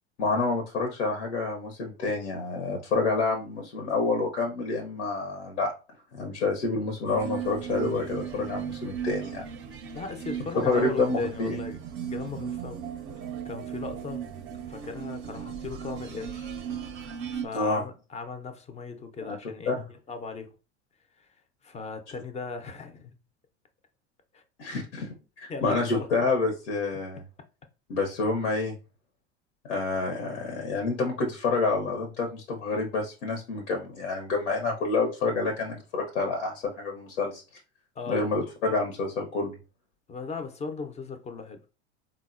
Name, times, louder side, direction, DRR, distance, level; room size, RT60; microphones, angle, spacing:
voice 1, 0.2-5.7 6.2-9.5 10.5-11.6 17.5-17.8 19.3-19.4 19.7-19.8 24.6-27.2 27.9-28.8 29.7-37.4 38.1-39.6, left 3 dB, 85° left, 0.8 m, -28 dB
sound 1, 7.1-17.5, right 8 dB, 35° right, 0.5 m, -36 dB
voice 2, 9.9-11.8 12.1-12.8 13.4-14.3 14.7-16.5 17.3-19.8 20.1-20.5 21.2-21.3 21.6-23.2 24.3-24.4 25.5-26.1 38.0-38.3 40.1-41.6, left 4 dB, 20° left, 0.4 m, -37 dB
3.7 x 2.1 x 2.4 m
hypercardioid pair, 100°, 35 cm